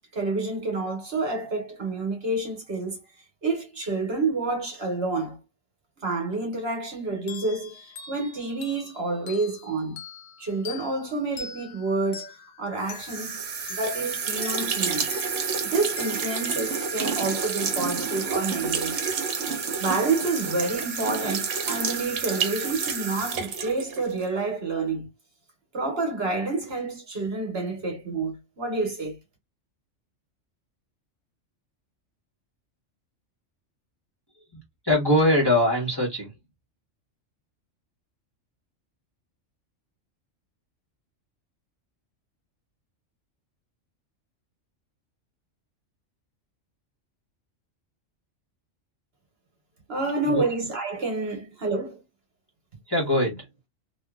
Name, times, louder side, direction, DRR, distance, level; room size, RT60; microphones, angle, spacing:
voice 1, 0.1-3.0 3.4-5.4 6.0-10.0 10.4-12.3 12.6-13.4 13.7-15.1 15.6-19.0 19.8-25.1 25.7-29.2 49.9-52.0, right 3 dB, 55° right, 1.2 m, -28 dB
sound 1, 7.3-17.5, left 7 dB, 60° left, 0.5 m, -44 dB
sound 2, 12.9-24.3, right 6 dB, 70° right, 1.0 m, -29 dB
voice 2, 34.8-36.3 50.3-50.4 52.9-53.5, left 1 dB, 20° left, 1.1 m, -22 dB
2.8 x 2.6 x 2.3 m
omnidirectional pair, 1.3 m